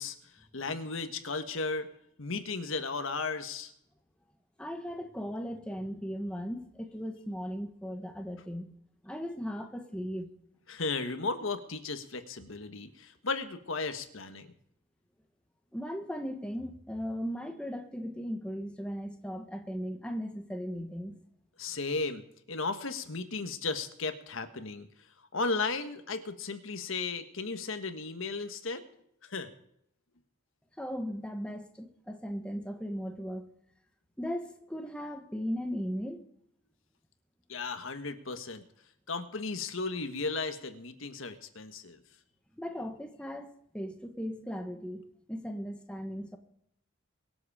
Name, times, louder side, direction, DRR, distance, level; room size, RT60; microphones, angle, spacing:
voice 1, 0.0-1.9 2.2-3.7 10.7-14.5 21.6-24.9 25.3-28.8 29.2-29.5 37.5-38.6 39.1-42.0, left 4 dB, 70° left, 8 dB, 1.5 m, -35 dB
voice 2, 4.6-8.7 9.0-10.3 15.7-21.2 30.8-33.5 34.2-36.2 42.6-46.4, equal, 5° left, 5 dB, 1.2 m, -37 dB
23.5 x 8.0 x 5.0 m, 0.72 s
head